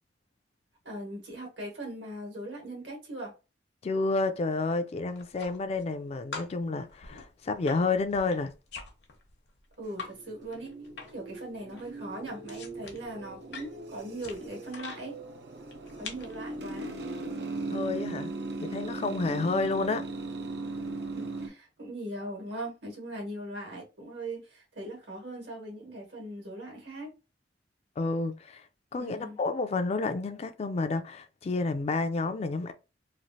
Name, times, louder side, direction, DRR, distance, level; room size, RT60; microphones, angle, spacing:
voice 1, 0.8-3.3 9.8-10.7 11.1-15.2 16.0-16.9 21.1-27.1 29.0-29.4, right 1 dB, 85° right, 1.5 m, -40 dB
voice 2, 3.8-8.5 17.7-18.3 18.6-20.1 28.0-28.6 28.9-32.7, left 3 dB, 35° left, 0.3 m, -30 dB
sound 1, 5.1-6.0 6.3-10.1 10.4-11.3 11.6-15.0 15.7-16.3, left 4 dB, 70° left, 0.8 m, -44 dB
sound 2, 9.9-21.5, right 2 dB, 65° right, 0.5 m, -38 dB
3.1 x 2.4 x 2.6 m
head